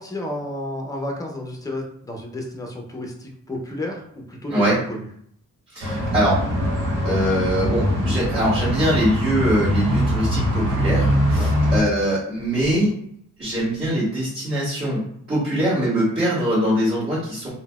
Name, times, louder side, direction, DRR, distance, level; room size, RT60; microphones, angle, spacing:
voice 1, 0.0-5.1 11.4-11.5, left 1 dB, 10° left, 0 dB, 0.6 m, -31 dB
voice 2, 5.7-6.4 7.0-12.9 13.4-15.0 15.3-17.5, right 1 dB, 30° right, -12 dB, 1.5 m, -22 dB
sound 1, 5.8-11.8, equal, 90° right, 0.9 m, -22 dB
3.7 x 2.2 x 2.3 m, 0.67 s
wide cardioid pair, 130°, 31 cm